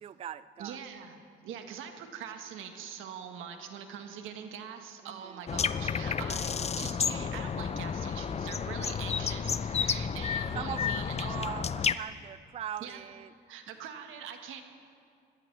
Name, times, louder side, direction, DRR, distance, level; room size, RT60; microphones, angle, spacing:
voice 1, 0.0-0.8 5.0-5.4 10.5-13.3, right 9 dB, 30° right, 15 dB, 0.3 m, -41 dB
voice 2, 0.6-1.2 1.4-11.4 12.8-13.0 13.5-14.6, right 8 dB, 90° right, 5 dB, 1.5 m, -43 dB
sound 1, 5.5-11.9, left 7 dB, 35° left, 0.5 m, -31 dB
22.5 x 17.5 x 3.4 m, 2.3 s
cardioid pair, 90°, 20 cm